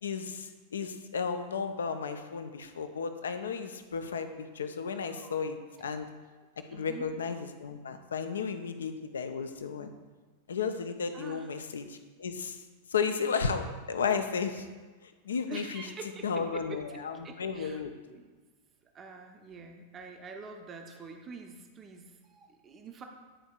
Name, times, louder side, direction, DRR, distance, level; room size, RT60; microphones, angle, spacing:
voice 1, 0.0-6.1 6.7-9.9 10.5-12.6 12.9-14.7 15.0-15.9 16.2-17.9, left 5 dB, 70° left, 8 dB, 0.5 m, -34 dB
voice 2, 6.7-7.1 11.1-11.5 15.5-17.8 18.1-18.3 18.9-23.0, right 4 dB, 25° right, 3 dB, 0.6 m, -46 dB
10.0 x 4.3 x 2.4 m, 1.4 s
figure-of-eight pair, 90°, 0 cm